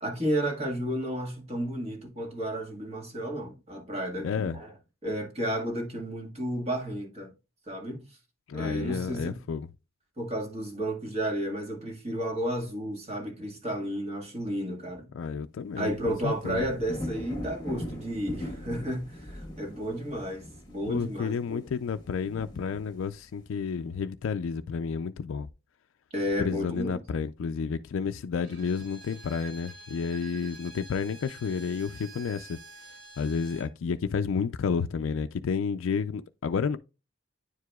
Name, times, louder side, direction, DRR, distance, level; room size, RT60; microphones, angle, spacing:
voice 1, 0.0-4.7 5.0-7.3 7.7-8.0 8.5-9.4 10.2-15.0 15.8-21.6 26.1-27.0, equal, 30° right, 1.6 m, -32 dB
voice 2, 4.2-4.6 8.5-9.7 15.1-16.7 20.9-25.5 26.4-32.6 33.2-36.8, left 6 dB, 70° left, 0.4 m, -31 dB
sound 1, 15.8-23.3, left 1 dB, 20° left, 1.4 m, -41 dB
Bowed string instrument, 28.4-33.7, right 2 dB, 60° right, 2.1 m, -48 dB
9.6 x 4.7 x 2.3 m
head